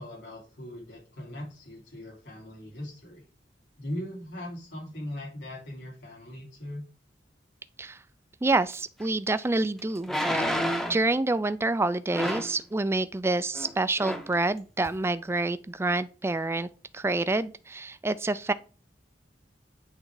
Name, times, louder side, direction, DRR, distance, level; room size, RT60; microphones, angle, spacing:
voice 1, 0.0-3.2 3.8-6.8, left 1 dB, 80° left, 3.2 m, -39 dB
voice 2, 8.4-10.5 10.9-16.7 16.9-18.5, right 2 dB, 15° right, 0.3 m, -27 dB
sound 1, 9.0-9.1 10.0-11.1 12.1-12.6 13.5-13.7 14.0-14.3 14.9-15.0, equal, ahead, 0.7 m, -29 dB
8.5 x 3.6 x 4.8 m
head